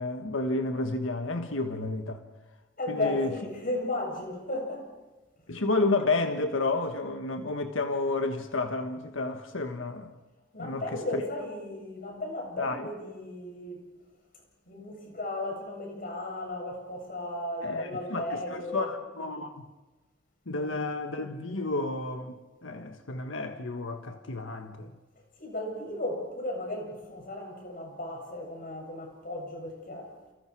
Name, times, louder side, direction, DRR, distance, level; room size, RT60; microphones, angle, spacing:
voice 1, 0.0-2.2 2.9-3.3 5.5-10.1 10.6-11.2 12.6-12.9 17.6-19.7 20.5-22.3 22.6-24.9, left 3 dB, 90° left, 1.5 m, -31 dB
voice 2, 2.8-4.9 10.5-13.8 14.7-18.9 20.5-20.7 25.4-30.1, left 1 dB, 45° left, 7.4 m, -35 dB
29.5 x 29.5 x 4.8 m
head